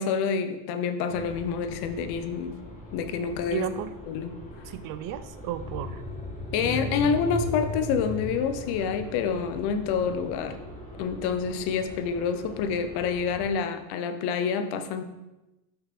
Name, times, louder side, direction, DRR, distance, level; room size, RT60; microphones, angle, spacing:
voice 1, 0.0-2.6 2.9-3.7 4.1-4.4 6.5-10.6 11.0-15.0, left 6 dB, 55° left, 10 dB, 0.8 m, -28 dB
sound 1, 1.1-13.5, left 1 dB, 15° left, 1.9 m, -39 dB
voice 2, 3.5-3.9 4.7-6.0 6.6-7.2, right 11 dB, 45° right, 13 dB, 0.5 m, -34 dB
5.7 x 5.3 x 4.2 m, 1.0 s
supercardioid pair, 100°, 47 cm